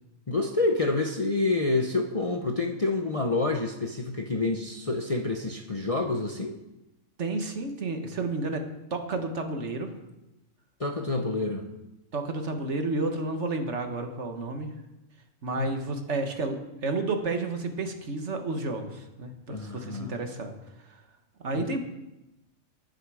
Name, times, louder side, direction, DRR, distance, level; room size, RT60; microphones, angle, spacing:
voice 1, 0.3-6.6 10.8-11.7 15.6-15.7 19.5-20.1 21.5-21.8, left 3 dB, 35° left, 3 dB, 0.7 m, -28 dB
voice 2, 7.2-8.6 8.9-9.9 12.1-14.7 15.4-20.5 21.4-21.8, right 3 dB, 60° right, 5 dB, 1.5 m, -31 dB
19.0 x 6.6 x 4.8 m, 0.95 s
omnidirectional pair, 1.4 m